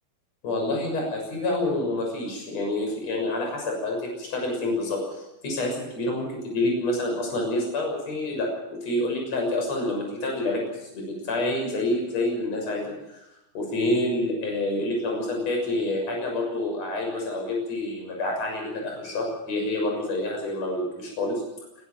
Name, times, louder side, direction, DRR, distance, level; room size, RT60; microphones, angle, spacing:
voice 1, 0.4-8.5 8.8-10.7 10.9-11.0 11.3-13.2 13.5-21.4, left 2 dB, 45° left, 1 dB, 7.7 m, -27 dB
20.5 x 19.0 x 7.7 m, 0.90 s
omnidirectional pair, 4.1 m